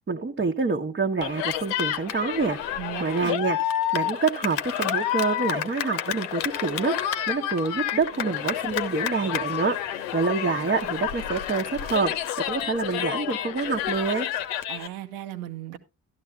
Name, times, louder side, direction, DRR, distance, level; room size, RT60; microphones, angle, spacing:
voice 1, 0.1-2.6 3.0-3.6 3.9-7.0 7.3-14.3, right 4 dB, 25° right, 1.0 m, -27 dB
Cheering, 1.2-14.9, left 11 dB, 75° left, 0.9 m, -29 dB
voice 2, 2.8-3.4 14.7-15.8, right 13 dB, 80° right, 1.1 m, -36 dB
12.5 x 12.0 x 2.3 m
hypercardioid pair, 45°, 42 cm